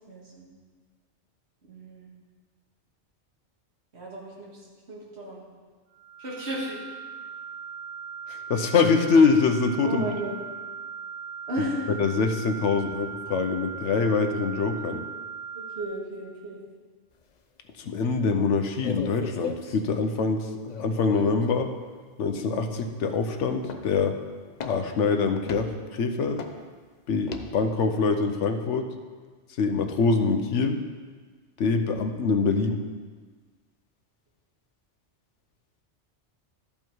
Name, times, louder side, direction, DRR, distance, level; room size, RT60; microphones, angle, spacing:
voice 1, 0.1-0.5 1.6-2.1 3.9-5.4 6.2-6.8 9.8-10.3 11.5-11.9 15.5-16.6, right 1 dB, 65° right, -5 dB, 2.1 m, -34 dB
sound 1, 5.9-15.8, right 6 dB, 45° right, 1.7 m, -39 dB
voice 2, 8.3-10.0 12.0-15.0 17.8-20.5 20.8-21.7 22.2-24.1 24.6-26.4 27.1-28.8 29.6-30.8 31.6-32.8, left 4 dB, 80° left, 6 dB, 1.1 m, -24 dB
sound 2, 18.8-19.8 20.7-21.4 23.6-24.0 24.5-24.9 25.4-25.7 26.3-26.6 27.3-27.5, left 5 dB, 45° left, 0.6 m, -36 dB
12.5 x 5.4 x 4.6 m, 1.5 s
omnidirectional pair, 1.2 m